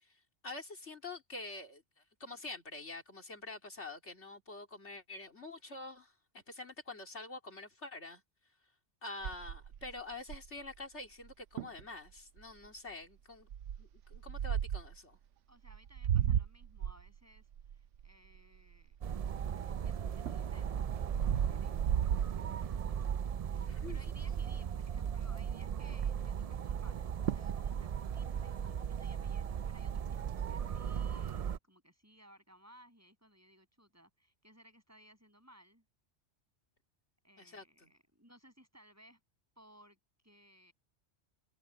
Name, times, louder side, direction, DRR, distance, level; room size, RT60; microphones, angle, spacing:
voice 1, 0.4-1.8 2.2-8.2 9.0-13.5 13.8-15.2 23.7-24.0 30.2-30.5 37.4-37.9, left 2 dB, 75° left, 3.6 m, -46 dB
sound 1, 9.2-10.7 11.2-11.3 11.6-11.8 12.4-12.7 13.5-15.0 15.6-19.5 20.0-23.1 23.5-23.8 24.1-24.2 24.4-25.2 26.9-27.0 27.3-27.6 27.9-28.9, right 9 dB, 85° right, 1.0 m, -35 dB
voice 2, 15.5-19.0 19.5-21.1 21.5-35.8 37.2-39.2 39.6-40.0 40.2-40.7, equal, 15° right, 7.1 m, -62 dB
sound 2, 19.0-31.6, right 8 dB, 65° right, 0.3 m, -37 dB
omnidirectional pair, 1.2 m